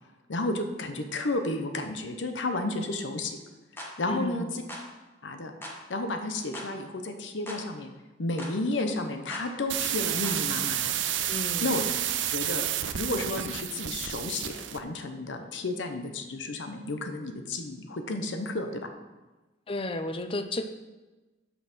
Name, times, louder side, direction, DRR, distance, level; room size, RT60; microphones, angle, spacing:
voice 1, 0.3-3.4 3.8-4.6 5.2-5.5 5.9-7.9 8.2-10.9 11.6-11.8 12.3-12.7 12.9-18.9, left 2 dB, 85° left, 6 dB, 0.9 m, -32 dB
sound 1, 3.8-3.9 4.7-4.9 5.6-5.8 6.5-6.7 7.5-7.6 8.4-8.6 9.3-9.5 10.2-10.4, left 1 dB, 15° left, 1.2 m, -40 dB
voice 2, 4.1-4.5 11.3-11.7 19.7-20.7, left 2 dB, 30° left, 9 dB, 0.5 m, -32 dB
sound 2, 9.7-14.8, right 11 dB, 90° right, 0.5 m, -30 dB
7.0 x 5.6 x 6.1 m, 1.2 s
head